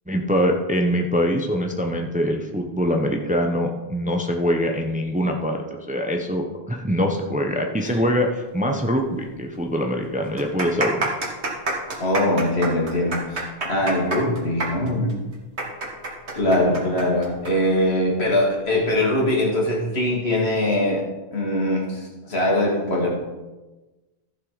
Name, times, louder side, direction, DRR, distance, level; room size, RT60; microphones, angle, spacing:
voice 1, 0.1-11.1, equal, 10° right, 3 dB, 0.7 m, -23 dB
sound 1, 9.2-9.3 9.5-9.6 10.3-17.5 17.8-17.9 18.7-18.9, right 2 dB, 85° right, 2.1 m, -28 dB
voice 2, 12.0-15.1 16.3-21.0 21.3-23.2, left 1 dB, 75° left, -2 dB, 2.4 m, -22 dB
14.5 x 6.3 x 4.0 m, 1.1 s
omnidirectional pair, 1.1 m